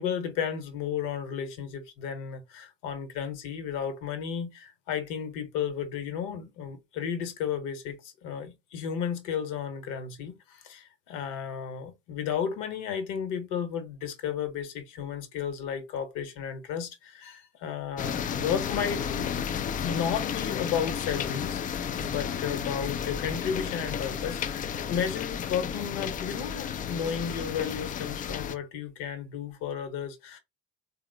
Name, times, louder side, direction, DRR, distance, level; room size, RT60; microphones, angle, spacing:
voice 1, 0.0-19.4 19.8-30.4, left 7 dB, 55° left, 0.9 m, -33 dB
sound 1, 18.0-28.5, left 8 dB, 25° left, 0.3 m, -32 dB
3.6 x 2.1 x 3.2 m
figure-of-eight pair, 55°, 37 cm